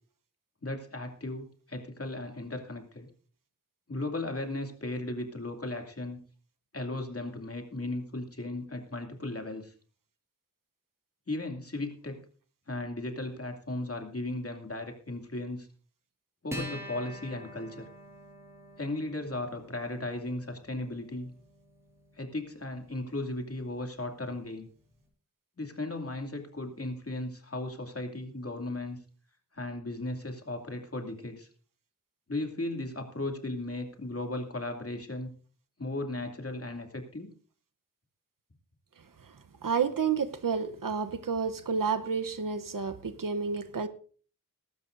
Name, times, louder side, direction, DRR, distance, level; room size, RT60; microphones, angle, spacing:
voice 1, 0.6-3.1 3.9-6.2 6.7-9.7 11.3-12.2 12.7-15.7 16.4-17.9 18.8-21.3 22.2-24.7 25.6-29.0 29.5-31.5 32.3-35.3 35.8-37.3, left 2 dB, 45° left, 4 dB, 2.6 m, -36 dB
Acoustic guitar, 16.5-23.3, equal, 10° right, 6.2 m, -46 dB
voice 2, 39.6-43.9, right 6 dB, 75° right, 10 dB, 0.9 m, -30 dB
22.0 x 12.0 x 2.6 m, 0.41 s
wide cardioid pair, 65°, 33 cm